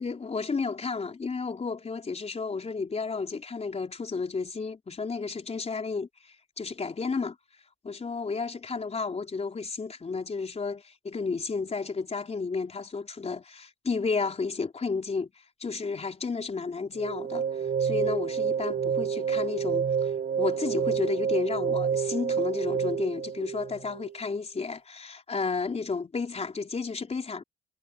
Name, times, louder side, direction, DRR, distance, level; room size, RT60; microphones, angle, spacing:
voice 1, 0.0-7.4 7.8-15.3 15.6-17.4 17.8-27.4, left 4 dB, 30° left, 4.0 m, -32 dB
sound 1, 17.0-24.2, right 7 dB, 50° right, 5.6 m, -29 dB
cardioid pair, 90°, 20 cm